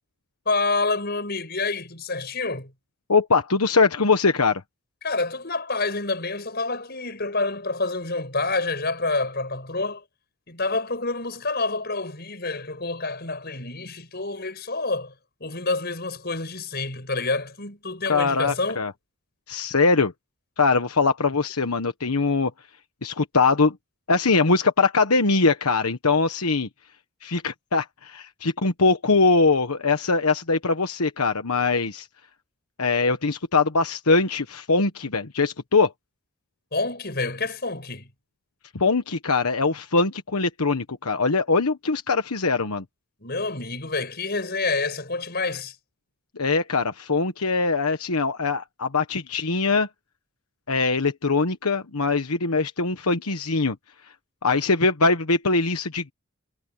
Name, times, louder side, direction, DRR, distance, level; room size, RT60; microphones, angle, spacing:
voice 1, 0.5-2.7 5.0-10.0 10.5-15.1 15.4-18.9 36.7-38.1 43.2-45.8, left 3 dB, 45° left, 6.9 m, -28 dB
voice 2, 3.1-4.6 18.1-18.9 19.5-20.1 20.6-22.5 23.0-23.7 24.1-26.7 27.2-32.1 32.8-35.9 38.7-42.8 46.4-49.9 50.7-53.8 54.4-56.1, left 4 dB, 80° left, 1.3 m, -22 dB
head